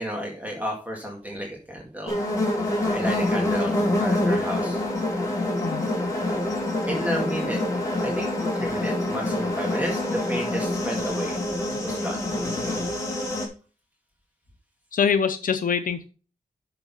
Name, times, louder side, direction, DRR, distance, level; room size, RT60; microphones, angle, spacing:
voice 1, 0.0-2.2 2.9-4.8 6.9-7.6 8.0-11.4 11.8-12.2, equal, 10° right, -1 dB, 2.1 m, -32 dB
sound 1, 2.1-13.5, left 1 dB, 25° left, 2.7 m, -26 dB
voice 2, 14.9-16.1, left 6 dB, 80° left, 9 dB, 0.7 m, -24 dB
6.9 x 6.2 x 5.4 m, 0.36 s
wide cardioid pair, 135°, 14 cm